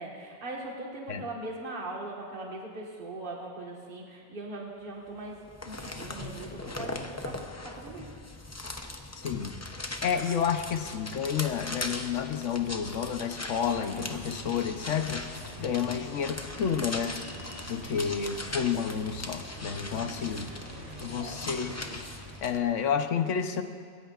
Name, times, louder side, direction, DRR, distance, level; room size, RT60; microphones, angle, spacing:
voice 1, 0.0-5.4 5.7-8.1 21.2-21.4 22.6-22.7, right 2 dB, 45° right, -2 dB, 1.8 m, -40 dB
sound 1, 5.3-22.6, left 2 dB, 20° left, 0.5 m, -40 dB
voice 2, 9.2-9.5 10.0-15.3 15.6-17.1 17.7-20.5 21.0-22.0 22.4-23.6, left 7 dB, 85° left, 7 dB, 1.2 m, -30 dB
sound 2, 13.5-22.4, right 1 dB, 80° right, 2.8 m, -46 dB
21.0 x 17.0 x 2.5 m, 2.1 s
omnidirectional pair, 1.2 m